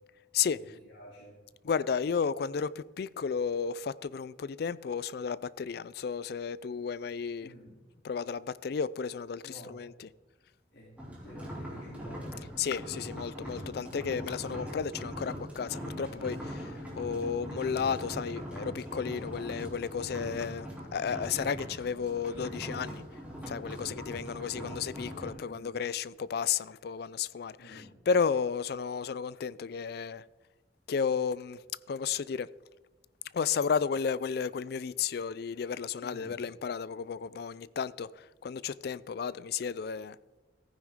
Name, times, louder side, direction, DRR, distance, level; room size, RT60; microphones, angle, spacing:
voice 1, 0.5-1.3 7.4-7.8 9.4-9.7 10.7-10.9 11.2-12.3 20.9-21.3 25.2-25.8 27.6-28.0 36.0-36.4, equal, 80° left, 3.1 m, -51 dB
voice 2, 1.6-7.5 8.0-10.1 12.6-23.0 23.5-30.2 30.9-31.6 31.9-32.5 33.3-40.2, left 6 dB, 60° left, 0.4 m, -33 dB
sound 1, 11.0-25.3, equal, 10° right, 2.9 m, -41 dB
15.0 x 9.7 x 3.6 m
head